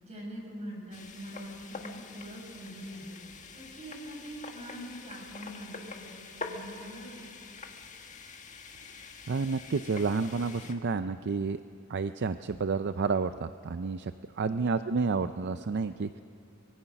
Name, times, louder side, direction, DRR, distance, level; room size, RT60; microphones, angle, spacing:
voice 1, 0.0-3.2 3.5-7.3 14.4-14.7, equal, 35° right, -1 dB, 6.4 m, -43 dB
sound 1, 0.9-10.7, left 4 dB, 35° left, 1.6 m, -45 dB
voice 2, 9.3-11.6 11.9-14.1 14.4-16.2, right 4 dB, 55° right, 11 dB, 0.5 m, -30 dB
24.5 x 21.5 x 5.9 m, 2.7 s
head